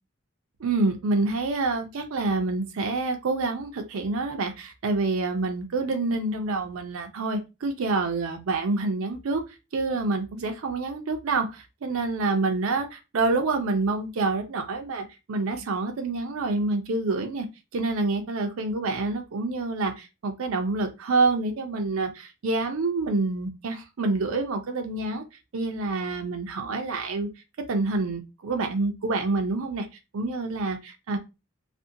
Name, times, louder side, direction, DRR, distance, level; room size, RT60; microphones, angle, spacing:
voice 1, 0.6-9.4 9.7-17.5 17.7-25.2 25.5-27.3 27.7-29.9 30.1-31.2, right 3 dB, 80° right, 0.5 m, -27 dB
2.5 x 2.1 x 2.6 m
head